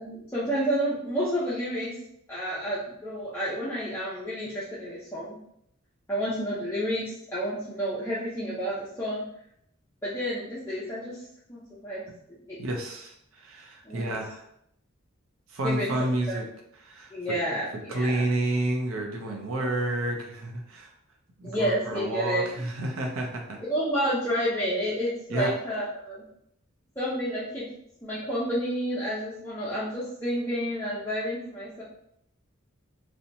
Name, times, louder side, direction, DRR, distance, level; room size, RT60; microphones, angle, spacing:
voice 1, 0.0-1.9 2.3-5.4 6.1-9.2 10.0-11.2 11.5-12.0 12.5-12.6 13.8-14.2 15.6-15.9 16.3-16.4 17.1-18.2 19.2-19.4 21.4-22.5 23.6-26.2 27.0-27.7 28.0-31.8, equal, 10° left, -10 dB, 0.5 m, -30 dB
voice 2, 12.6-14.4 15.5-16.5 16.8-17.1 17.9-20.9 21.4-23.6 25.3-25.5, right 1 dB, 75° right, 1 dB, 0.6 m, -30 dB
2.8 x 2.1 x 2.6 m, 0.74 s
head